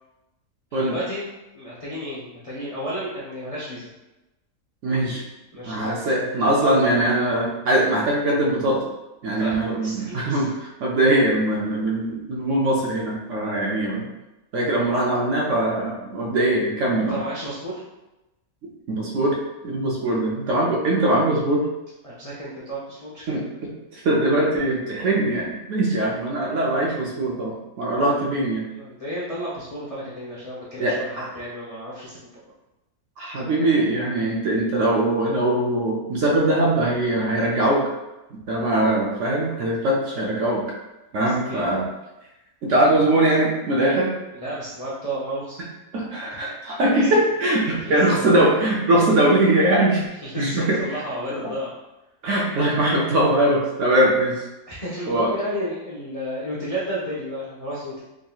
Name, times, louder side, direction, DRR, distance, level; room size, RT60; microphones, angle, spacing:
voice 1, 0.7-1.3 1.5-3.9 5.5-5.9 6.8-7.4 9.3-10.5 16.9-17.8 22.0-23.3 28.0-28.3 28.7-32.2 41.2-41.7 44.3-45.6 46.3-46.4 47.0-47.1 47.8-48.2 50.2-51.7 54.7-58.0, equal, 50° left, -7 dB, 0.4 m, -32 dB
voice 2, 4.8-5.2 5.6-8.8 9.2-14.1 14.5-17.2 18.9-19.4 19.6-21.6 23.3-28.6 30.8-31.3 33.2-37.8 38.5-40.6 41.1-41.8 42.6-44.1 45.9-50.1 50.4-51.0 51.3-51.5 52.2-54.4 55.1-55.3, right 1 dB, 65° right, -2 dB, 0.9 m, -21 dB
3.6 x 2.8 x 2.3 m, 0.99 s
omnidirectional pair, 1.6 m